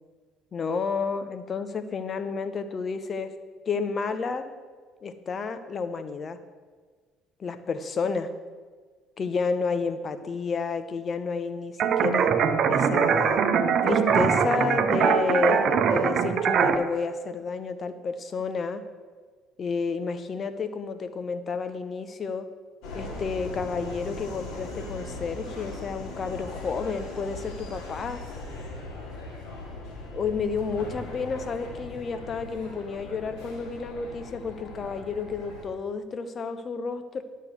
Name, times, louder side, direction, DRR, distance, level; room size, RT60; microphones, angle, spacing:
voice 1, 0.5-3.3 3.7-4.5 5.0-6.4 7.4-8.3 9.2-12.3 12.7-13.4 13.8-18.8 19.6-22.5 22.9-28.2 30.1-37.2, left 5 dB, 40° left, 11 dB, 0.9 m, -31 dB
sound 1, 11.8-16.8, right 6 dB, 50° right, 0.9 m, -22 dB
Subway metro underground, 22.8-35.6, left 2 dB, 65° left, 2.7 m, -39 dB
11.5 x 6.5 x 6.8 m, 1.5 s
figure-of-eight pair, 55°, 0 cm